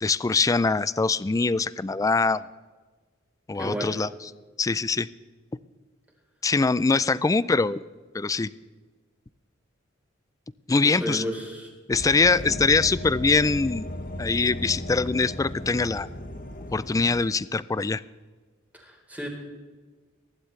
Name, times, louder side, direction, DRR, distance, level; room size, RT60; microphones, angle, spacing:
voice 1, 0.0-2.4 3.5-4.1 4.6-5.1 6.4-7.8 8.1-8.5 10.7-11.2 11.9-13.9 14.2-16.1 16.7-18.0, left 4 dB, 15° left, 18 dB, 0.3 m, -23 dB
voice 2, 3.5-3.9 10.8-11.7 12.5-12.6 18.7-19.3, equal, 10° right, -1 dB, 3.6 m, -32 dB
sound 1, 11.9-17.2, left 1 dB, 45° left, 1.4 m, -36 dB
24.0 x 11.5 x 3.2 m, 1.3 s
head